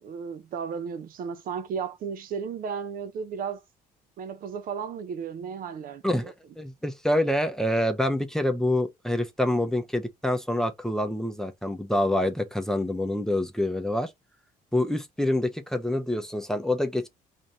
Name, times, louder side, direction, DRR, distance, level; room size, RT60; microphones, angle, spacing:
voice 1, 0.0-3.6 4.2-6.3, right 6 dB, 60° right, 0.7 m, -34 dB
voice 2, 6.0-14.1 14.7-17.1, left 1 dB, 5° left, 0.7 m, -26 dB
3.8 x 2.7 x 3.0 m
cardioid pair, 110°, 17 cm